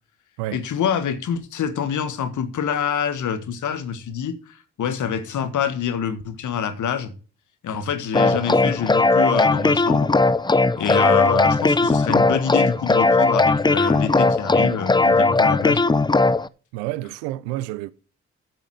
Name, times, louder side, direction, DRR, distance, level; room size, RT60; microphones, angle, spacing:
voice 1, 0.5-7.1 7.6-10.1 10.8-15.8, left 7 dB, 65° left, 1.6 m, -26 dB
sound 1, 8.1-16.5, left 3 dB, 15° left, 0.6 m, -18 dB
voice 2, 16.7-17.9, right 16 dB, 90° right, 0.6 m, -29 dB
8.1 x 6.9 x 7.9 m
hypercardioid pair, 45°, 32 cm